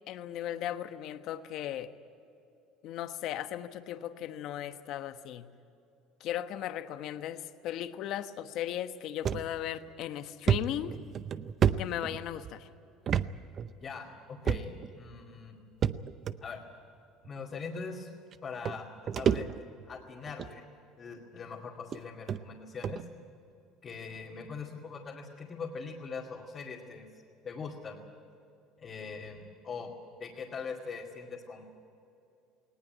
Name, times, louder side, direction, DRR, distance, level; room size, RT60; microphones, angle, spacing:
voice 1, 0.1-1.9 2.8-5.5 6.2-11.0 11.8-12.7, left 11 dB, 60° left, 10 dB, 1.1 m, -37 dB
sound 1, 9.3-9.4 9.9-10.0 10.5-12.5 13.1-13.3 13.6-13.7 14.5-14.9 15.8-16.4 17.2-17.3 18.3-18.4 18.7-19.8 20.3-20.6 21.3-21.4 21.9-22.0 22.3-22.4 22.8-23.0, right 8 dB, 35° right, 0.6 m, -29 dB
voice 2, 13.8-15.6 16.4-16.6 17.2-18.1 18.4-19.5 19.9-20.6 21.0-23.0 23.8-27.1 27.4-28.0 28.8-29.9 30.2-31.7, left 5 dB, 30° left, -3 dB, 2.4 m, -42 dB
19.5 x 18.5 x 9.1 m, 2.7 s
cardioid pair, 135°, 0 cm